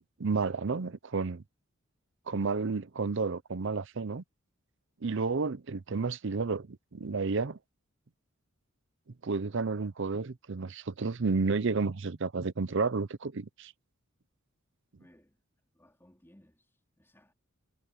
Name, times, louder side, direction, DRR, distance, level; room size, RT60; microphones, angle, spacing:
voice 1, 0.2-1.4 2.3-4.2 5.0-7.6 9.2-13.7, right 4 dB, 60° right, 0.7 m, -31 dB
voice 2, 15.0-15.4 15.7-17.3, left 1 dB, 10° left, 4.0 m, -62 dB
head